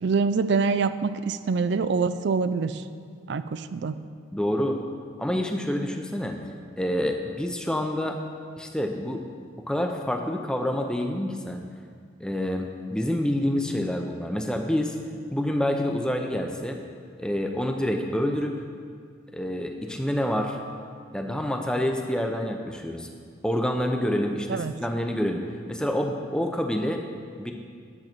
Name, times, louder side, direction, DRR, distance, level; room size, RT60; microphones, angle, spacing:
voice 1, 0.0-2.8 3.3-4.0 24.5-24.7, right 4 dB, 55° right, 13 dB, 0.3 m, -25 dB
voice 2, 4.3-4.8 5.2-6.4 6.8-8.2 8.6-9.2 9.7-11.6 12.2-15.0 15.3-16.8 17.2-18.6 19.3-20.6 21.1-23.1 23.4-25.4 25.7-27.0 27.4-27.5, left 1 dB, 5° left, 3 dB, 0.6 m, -27 dB
10.5 x 7.4 x 4.4 m, 2.1 s
head